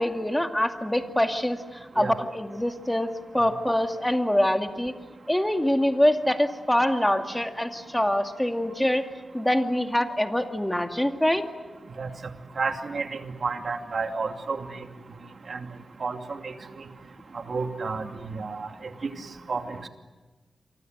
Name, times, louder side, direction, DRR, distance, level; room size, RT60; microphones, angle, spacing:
voice 1, 0.0-1.6 1.9-4.9 5.3-9.1 9.3-11.5, left 1 dB, 10° left, 5 dB, 2.3 m, -24 dB
voice 2, 12.6-14.9 15.5-15.7 16.0-16.8 17.3-18.7 19.0-19.1 19.5-19.9, right 4 dB, 60° right, 5 dB, 2.6 m, -31 dB
29.0 x 25.0 x 8.0 m, 1.3 s
wide cardioid pair, 85°, 0 cm